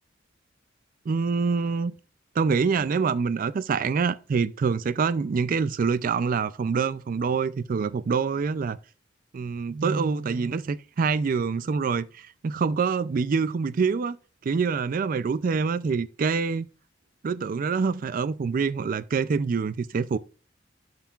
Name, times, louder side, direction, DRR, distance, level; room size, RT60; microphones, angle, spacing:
voice 1, 1.1-1.9 2.4-8.8 9.3-14.2 14.4-16.7 17.2-20.2, right 5 dB, 50° right, 0.4 m, -26 dB
11.5 x 5.6 x 2.4 m
head